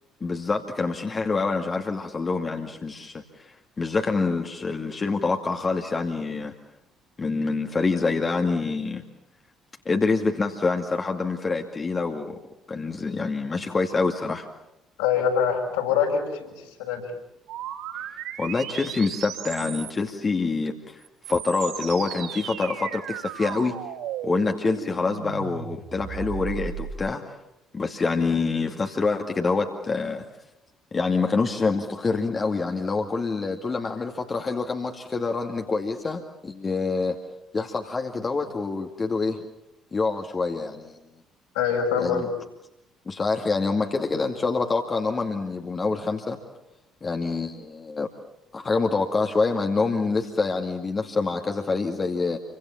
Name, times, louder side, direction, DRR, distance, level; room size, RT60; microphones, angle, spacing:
voice 1, 0.2-6.5 7.2-9.0 9.9-12.4 12.7-14.5 18.4-23.8 24.2-27.2 27.7-30.2 30.9-37.2 37.5-39.4 39.9-41.0 42.0-42.3 43.1-46.4 47.0-48.1 48.5-52.4, left 4 dB, 30° left, 3 dB, 2.3 m, -26 dB
voice 2, 15.0-17.1 41.5-42.3, left 7 dB, 70° left, 0 dB, 6.3 m, -24 dB
sound 1, 17.5-20.1 21.0-27.0, right 10 dB, 60° right, 6.9 m, -36 dB
28.5 x 25.0 x 7.2 m, 0.86 s
figure-of-eight pair, 50°, 0 cm